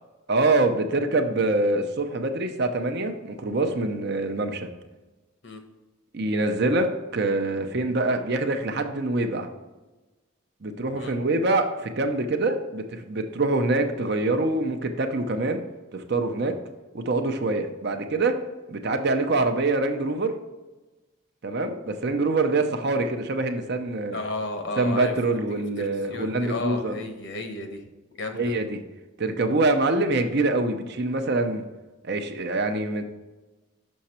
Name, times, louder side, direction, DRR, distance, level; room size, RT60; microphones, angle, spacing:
voice 1, 0.3-4.7 6.1-9.5 10.6-15.6 15.9-16.5 16.9-18.3 18.7-20.3 21.4-24.2 24.8-26.9 28.3-28.8 29.2-31.6 32.0-33.0, right 2 dB, 50° right, 6 dB, 0.7 m, -25 dB
voice 2, 24.1-25.4 25.8-27.8 28.1-28.5, left 2 dB, 60° left, 5 dB, 1.0 m, -33 dB
6.4 x 5.8 x 4.3 m, 1.1 s
head